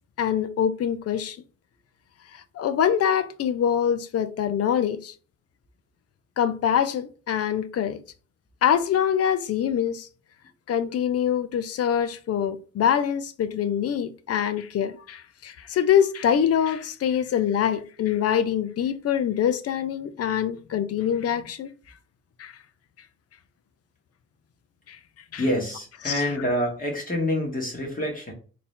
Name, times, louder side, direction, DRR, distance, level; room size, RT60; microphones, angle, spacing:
voice 1, 0.2-1.4 2.3-5.1 6.4-8.0 8.6-10.1 10.7-21.7 22.4-22.6 24.9-25.0 25.3-25.4 26.0-26.3, left 9 dB, 50° left, 0.6 m, -24 dB
voice 2, 25.4-28.3, left 1 dB, 25° left, 1.7 m, -27 dB
4.1 x 2.8 x 3.6 m
cardioid pair, 90°, 30 cm